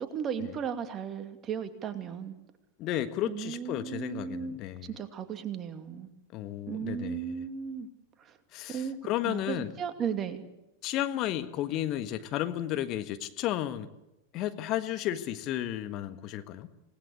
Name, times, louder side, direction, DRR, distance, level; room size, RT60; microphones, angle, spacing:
voice 1, 0.0-2.4 3.2-6.1 6.7-7.9 8.2-8.4 8.7-10.4, right 7 dB, 25° right, 8 dB, 2.5 m, -36 dB
voice 2, 2.8-4.9 6.3-7.4 8.5-9.7 10.8-13.9 14.3-16.7, left 12 dB, 40° left, 10 dB, 1.5 m, -33 dB
28.0 x 19.0 x 8.6 m, 0.94 s
figure-of-eight pair, 90°, 0 cm